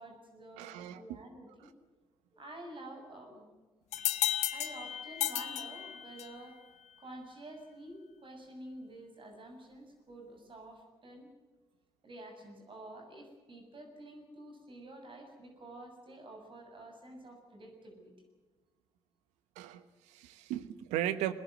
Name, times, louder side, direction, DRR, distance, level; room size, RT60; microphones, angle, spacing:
voice 1, 0.0-1.7 2.3-3.5 4.5-6.6 7.0-11.3 12.0-18.1, right 1 dB, 45° right, 3 dB, 7.3 m, -49 dB
voice 2, 0.6-1.0 19.6-21.3, right 12 dB, 80° right, 13 dB, 1.2 m, -36 dB
sound 1, 3.9-6.5, left 12 dB, 75° left, 1.1 m, -34 dB
23.0 x 20.5 x 7.9 m, 1.3 s
hypercardioid pair, 45°, 12 cm